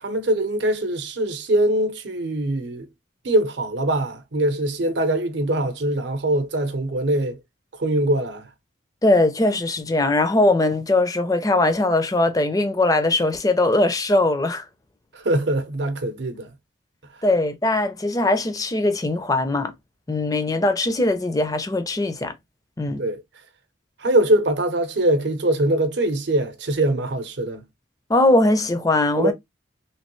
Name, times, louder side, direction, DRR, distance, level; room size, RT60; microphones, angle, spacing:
voice 1, 0.0-2.9 3.2-7.4 7.8-8.5 15.2-16.5 23.0-23.2 24.0-27.6 29.2-29.3, right 1 dB, 65° right, 0.7 m, -22 dB
voice 2, 9.0-14.6 17.2-19.7 20.1-22.3 22.8-23.0 28.1-29.3, left 2 dB, 20° left, 0.4 m, -20 dB
3.1 x 2.9 x 3.0 m
head